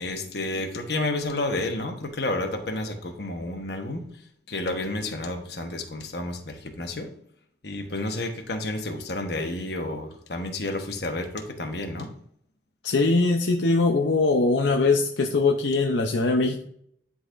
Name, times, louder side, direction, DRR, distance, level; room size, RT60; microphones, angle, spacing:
voice 1, 0.0-4.0 4.5-7.1 7.6-12.1, left 2 dB, 60° left, 4 dB, 1.1 m, -30 dB
voice 2, 12.8-16.6, left 3 dB, 80° left, 2 dB, 0.6 m, -22 dB
11.0 x 4.1 x 2.5 m, 0.66 s
head